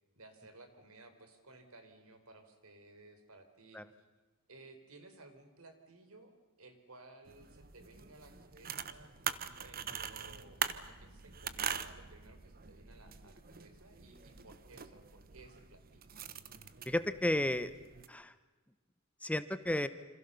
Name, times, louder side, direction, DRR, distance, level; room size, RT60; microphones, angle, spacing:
voice 1, 0.2-3.8 4.5-6.3 6.6-16.1, right 2 dB, 80° right, 8 dB, 4.2 m, -58 dB
sound 1, 7.3-18.1, right 8 dB, 45° right, 1.2 m, -43 dB
voice 2, 16.9-17.7 18.1-18.3 19.2-19.9, left 1 dB, 5° left, 12 dB, 0.9 m, -32 dB
28.0 x 26.5 x 6.9 m, 1.2 s
head